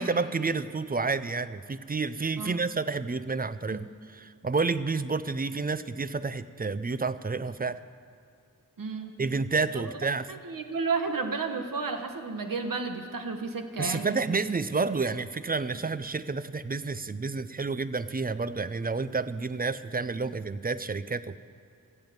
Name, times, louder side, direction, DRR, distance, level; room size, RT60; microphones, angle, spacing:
voice 1, 0.0-3.9 4.2-7.8 9.2-10.3 13.8-21.4, right 4 dB, 25° right, 14 dB, 0.5 m, -30 dB
voice 2, 8.8-9.1 9.7-10.0 10.3-14.3, right 4 dB, 75° right, 6 dB, 1.2 m, -32 dB
15.5 x 7.3 x 7.9 m, 2.4 s
wide cardioid pair, 60°, 34 cm